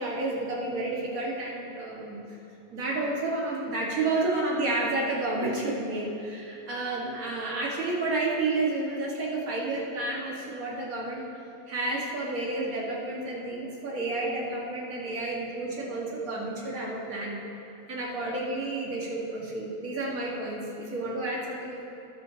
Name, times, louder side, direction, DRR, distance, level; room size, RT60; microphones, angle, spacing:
voice 1, 0.0-2.2 2.7-11.2 11.7-17.4 17.9-21.8, right 2 dB, 70° right, -4 dB, 2.1 m, -30 dB
18.5 x 7.4 x 2.8 m, 2.9 s
omnidirectional pair, 1.6 m